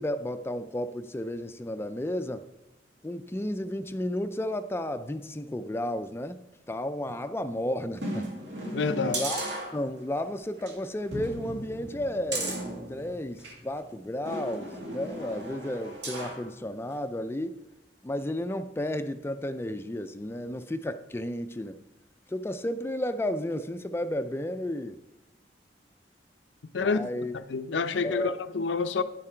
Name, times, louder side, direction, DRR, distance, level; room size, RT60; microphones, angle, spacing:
voice 1, 0.0-2.4 3.0-6.4 6.7-8.3 9.0-9.4 9.7-12.6 12.9-17.5 18.0-21.8 22.3-25.0 26.8-27.3 28.0-28.3, left 1 dB, 15° left, 0.4 m, -32 dB
sound 1, 8.0-10.2 10.6-10.7 11.1-13.6 14.2-16.4 16.9-17.0, right 1 dB, 75° right, 2.2 m, -36 dB
voice 2, 8.7-9.2 26.7-27.0 27.3-29.0, left 4 dB, 90° left, 0.6 m, -28 dB
9.9 x 7.4 x 4.4 m
head